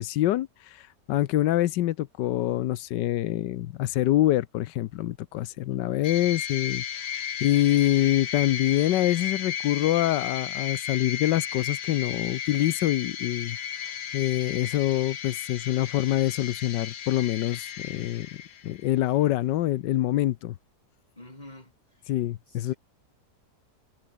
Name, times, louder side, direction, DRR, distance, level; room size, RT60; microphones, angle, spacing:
voice 1, 0.0-6.8 7.4-13.6 14.1-18.3 18.6-20.5 22.1-22.7, left 14 dB, 90° left, 1.4 m, -25 dB
sound 1, 6.0-18.9, left 9 dB, 70° left, 1.8 m, -34 dB
voice 2, 21.2-21.7 22.7-22.8, left 1 dB, 25° left, 4.9 m, -45 dB
omnidirectional pair, 1.8 m